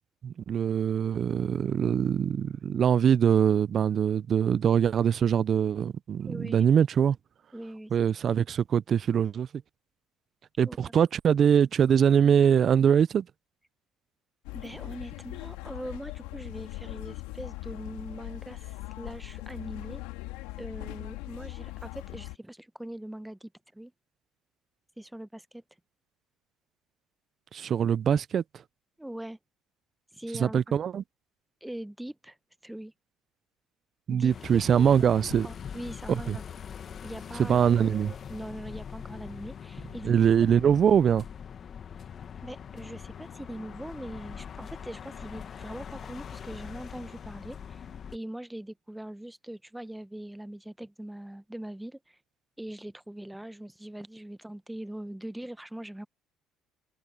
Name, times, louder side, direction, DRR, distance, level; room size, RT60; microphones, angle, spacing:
voice 1, 0.2-7.2 7.9-9.5 10.6-13.3 27.5-28.4 30.4-31.0 34.1-35.5 36.1-36.4 37.4-38.1 40.0-41.2, right 8 dB, 45° right, 0.4 m, -23 dB
voice 2, 6.3-6.7 7.5-8.1 10.6-11.0 14.5-20.0 20.6-23.9 25.0-25.6 29.0-29.4 30.1-30.8 31.6-32.4 32.6-32.9 34.1-34.3 34.7-35.2 35.4-36.4 37.0-37.7 38.1-40.1 40.4-40.5 42.4-47.8 48.1-52.2 52.6-56.1, right 1 dB, 5° right, 0.8 m, -41 dB
sound 1, 14.4-22.4, left 20 dB, 90° left, 2.1 m, -40 dB
sound 2, 34.3-48.2, left 7 dB, 45° left, 1.5 m, -42 dB
supercardioid pair, 100°, 0 cm